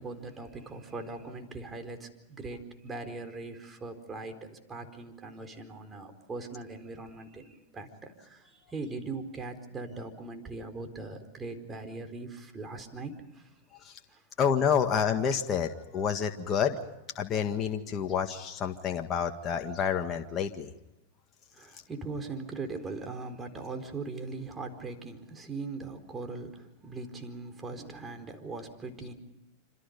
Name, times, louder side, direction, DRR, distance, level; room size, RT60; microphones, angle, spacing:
voice 1, 0.0-13.5 14.1-14.2 21.5-29.1, right 3 dB, 20° right, 6 dB, 4.3 m, -40 dB
voice 2, 14.4-16.8 17.2-20.7, left 7 dB, 30° left, 4 dB, 1.8 m, -28 dB
27.5 x 27.0 x 5.3 m, 0.92 s
hypercardioid pair, 110°, 0 cm